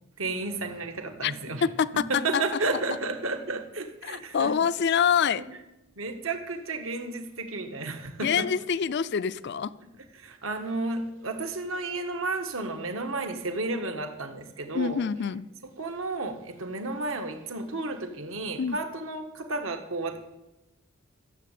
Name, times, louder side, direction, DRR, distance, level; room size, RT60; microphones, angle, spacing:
voice 1, 0.2-1.6 2.1-4.5 6.0-8.4 10.2-15.0 15.8-20.2, right 3 dB, 70° right, 6 dB, 1.5 m, -32 dB
voice 2, 1.6-2.4 4.0-5.4 8.2-9.7 14.7-15.5 18.6-18.8, left 7 dB, 50° left, 16 dB, 0.4 m, -26 dB
14.5 x 7.4 x 8.4 m, 0.98 s
head